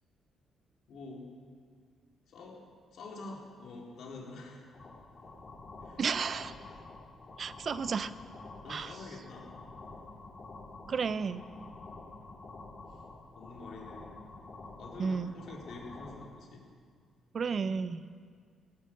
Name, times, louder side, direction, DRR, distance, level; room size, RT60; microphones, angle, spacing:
voice 1, 0.9-1.3 2.3-2.6 2.9-4.6 5.8-6.0 8.6-9.5 12.9-13.0 13.4-14.1 14.8-16.7, left 3 dB, 70° left, -2 dB, 3.9 m, -46 dB
sound 1, 4.7-16.2, left 3 dB, 40° left, 4.8 m, -49 dB
voice 2, 6.0-6.5 7.4-8.1 8.7-9.0 10.9-11.4 15.0-15.3 17.3-18.1, right 5 dB, 45° right, 14 dB, 0.6 m, -32 dB
17.5 x 11.0 x 7.8 m, 2.1 s
cardioid pair, 90°, 0 cm